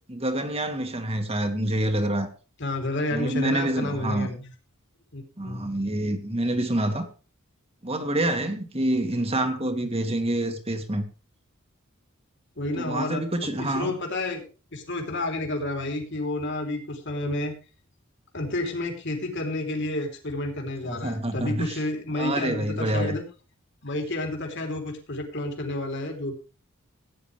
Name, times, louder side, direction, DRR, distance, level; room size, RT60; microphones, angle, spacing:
voice 1, 0.1-2.3 3.1-4.3 5.4-7.1 7.8-11.0 12.8-13.9 20.8-21.8 22.2-23.2, right 1 dB, 30° right, 2.0 m, -27 dB
voice 2, 2.6-4.5 5.1-5.6 12.6-13.2 13.7-14.4 14.7-17.5 18.3-23.2 23.8-26.3, left 2 dB, 55° left, 3.4 m, -30 dB
16.0 x 9.9 x 3.4 m
head